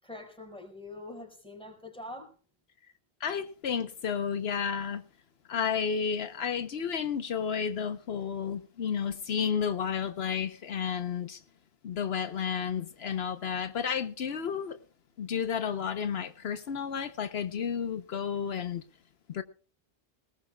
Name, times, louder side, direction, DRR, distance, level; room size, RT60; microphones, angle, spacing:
voice 1, 0.0-2.3, left 2 dB, 5° left, 4.9 m, -44 dB
voice 2, 3.2-5.0 5.5-11.4 11.8-14.8 15.2-18.8 19.3-19.4, left 7 dB, 80° left, 1.1 m, -32 dB
20.0 x 18.5 x 2.3 m
omnidirectional pair, 1.1 m